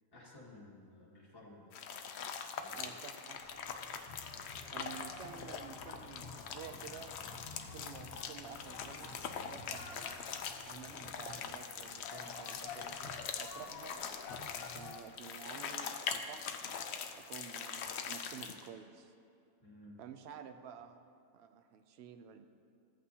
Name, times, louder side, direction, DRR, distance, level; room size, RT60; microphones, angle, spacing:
voice 1, 0.1-1.8 2.5-2.9 4.7-4.9 5.2-5.4 19.6-20.0, left 1 dB, 15° left, -6 dB, 1.8 m, -56 dB
sound 1, 1.7-18.7, left 6 dB, 60° left, 0.8 m, -43 dB
voice 2, 2.7-3.7 4.7-7.1 7.6-13.1 13.4-14.0 14.5-16.4 17.1-19.1 20.0-21.0 21.3-22.5, right 8 dB, 65° right, 9 dB, 0.7 m, -51 dB
sound 2, 3.4-15.1, left 4 dB, 90° left, 1.3 m, -51 dB
14.0 x 8.3 x 2.8 m, 2.4 s
omnidirectional pair, 1.5 m